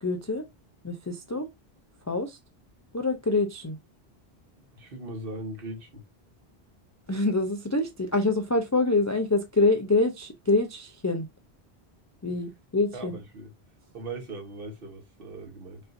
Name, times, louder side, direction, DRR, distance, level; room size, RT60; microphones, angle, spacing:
voice 1, 0.0-0.5 0.8-1.5 2.1-2.4 2.9-3.8 7.1-11.3 12.2-13.2, left 2 dB, 30° left, 0.3 m, -26 dB
voice 2, 4.7-6.0 12.9-13.5 13.9-15.8, right 2 dB, 65° right, 1.3 m, -39 dB
5.3 x 2.6 x 2.5 m
omnidirectional pair, 1.0 m